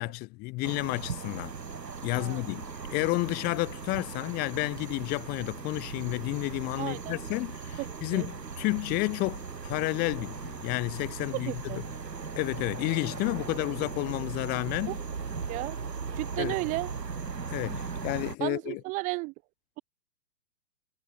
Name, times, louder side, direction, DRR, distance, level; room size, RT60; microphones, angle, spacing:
voice 1, 0.0-1.5 2.0-11.6 12.4-15.0 16.4-16.6 17.5-18.8, left 24 dB, 20° left, 1.1 m, -31 dB
sound 1, 0.6-18.4, right 5 dB, 85° right, 6.9 m, -38 dB
voice 2, 2.1-2.5 6.8-7.2 7.8-8.3 11.3-11.8 14.9-15.0 15.5-15.8 16.1-16.9 18.4-19.3, right 24 dB, 15° right, 0.8 m, -34 dB
hypercardioid pair, 135°, 49 cm